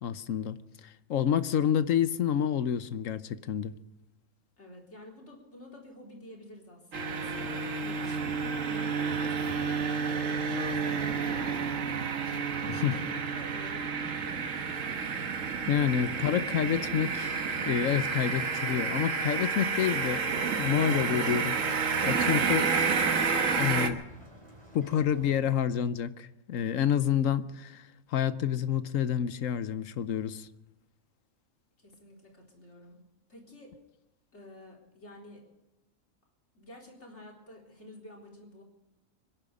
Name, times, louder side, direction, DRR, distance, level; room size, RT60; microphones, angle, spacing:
voice 1, 0.0-3.7 12.8-13.0 15.7-17.3 17.7-20.2 20.6-22.7 23.6-24.0 24.7-27.8 28.1-30.5, left 9 dB, 80° left, 1.2 m, -28 dB
voice 2, 4.6-11.7 12.6-14.9 31.8-33.0 33.3-33.8 34.3-35.4 36.5-38.6, left 1 dB, 60° left, 4.3 m, -50 dB
sound 1, 6.9-23.9, right 5 dB, 80° right, 1.6 m, -30 dB
sound 2, 20.0-25.4, right 1 dB, 25° right, 3.0 m, -51 dB
25.0 x 11.0 x 5.0 m
omnidirectional pair, 1.4 m